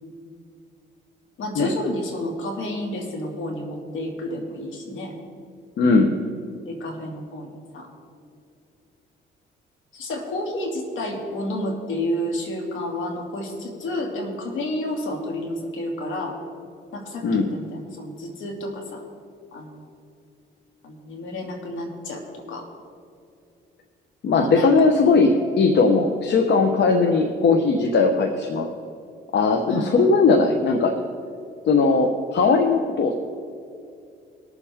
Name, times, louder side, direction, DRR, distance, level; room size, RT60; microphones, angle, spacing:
voice 1, 1.4-5.1 6.7-7.9 9.9-16.4 16.9-19.0 19.5-19.8 20.8-22.7 24.4-25.1 29.7-30.4, left 1 dB, 75° left, 1 dB, 2.4 m, -30 dB
voice 2, 5.8-6.1 17.2-17.5 24.2-28.7 29.3-31.0 31.7-33.1, left 4 dB, 60° left, 4 dB, 1.0 m, -19 dB
21.5 x 7.2 x 3.6 m, 2.5 s
cardioid pair, 90°, 20 cm